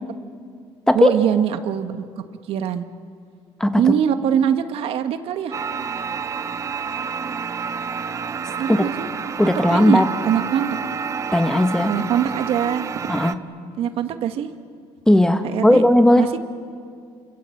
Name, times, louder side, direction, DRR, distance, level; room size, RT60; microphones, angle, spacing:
voice 1, 0.9-2.8 3.8-5.5 8.6-9.1 9.7-10.7 11.9-12.9 13.8-14.5 15.4-15.8 16.2-16.4, right 9 dB, 65° right, 8 dB, 1.5 m, -22 dB
sound 1, 5.5-13.4, right 6 dB, 30° right, 0.8 m, -29 dB
voice 2, 9.4-10.1 11.3-11.9 13.1-13.4 15.1-16.3, left 1 dB, 5° left, 8 dB, 1.3 m, -16 dB
28.0 x 25.5 x 7.8 m, 2.3 s
cardioid pair, 130°, 10 cm